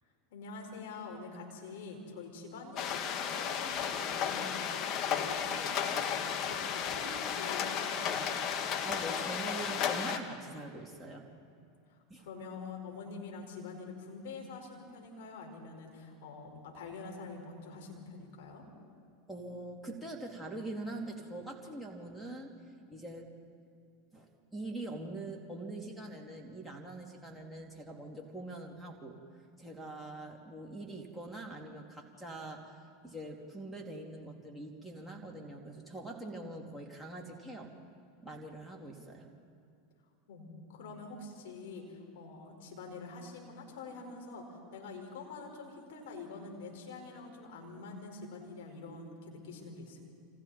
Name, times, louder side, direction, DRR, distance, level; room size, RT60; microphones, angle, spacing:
voice 1, 0.3-8.3 11.9-18.7 40.3-50.0, left 4 dB, 70° left, 1 dB, 5.2 m, -46 dB
sound 1, 2.8-10.2, left 7 dB, 45° left, 1.9 m, -34 dB
voice 2, 8.8-11.3 12.1-12.3 19.3-22.5 22.9-23.3 24.1-29.2 29.6-37.7 38.2-39.3, right 2 dB, ahead, 1 dB, 2.9 m, -43 dB
29.0 x 26.0 x 4.4 m, 2.4 s
hypercardioid pair, 95°, 0 cm